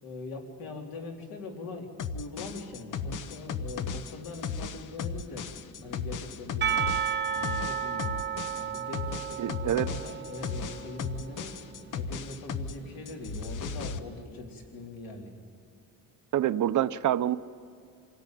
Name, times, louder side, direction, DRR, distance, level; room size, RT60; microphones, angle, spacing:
voice 1, 0.0-5.5 5.8-6.9 7.3-8.2 8.6-11.6 11.9-15.3, left 2 dB, 90° left, 1 dB, 3.9 m, -42 dB
sound 1, 2.0-12.8 13.1-14.0, left 6 dB, 60° left, 1.0 m, -36 dB
sound 2, 3.0-14.2, equal, 30° left, 3.5 m, -53 dB
Percussion / Church bell, 6.6-11.4, right 8 dB, 30° right, 1.0 m, -33 dB
voice 2, 9.4-9.9 16.3-17.4, right 12 dB, 60° right, 13 dB, 0.7 m, -26 dB
26.5 x 17.5 x 9.3 m, 2.3 s
cardioid pair, 175°, 35 cm